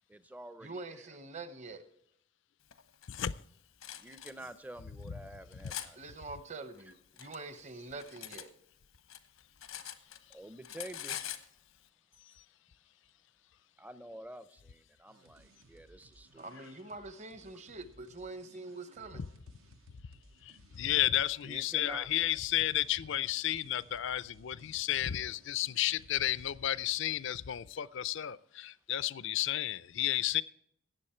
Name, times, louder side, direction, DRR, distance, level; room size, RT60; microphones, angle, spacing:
voice 1, 0.1-1.2 4.0-6.1 10.3-11.2 13.8-16.5 21.5-22.1, right 1 dB, 10° right, 13 dB, 0.5 m, -48 dB
voice 2, 0.6-1.8 6.0-8.5 16.4-19.2, right 3 dB, 35° right, 11 dB, 0.8 m, -45 dB
Cutlery silverware, 2.7-3.3 3.8-4.3 5.0-5.9 6.8-8.5 8.8-10.4 10.6-11.5, left 11 dB, 90° left, 0.9 m, -44 dB
voice 3, 3.1-3.4 12.2-12.4 19.1-19.2 20.4-30.4, left 13 dB, 60° left, 18 dB, 0.4 m, -32 dB
sound 1, 15.1-26.5, right 2 dB, 80° right, 0.8 m, -62 dB
17.5 x 7.1 x 4.3 m, 0.73 s
head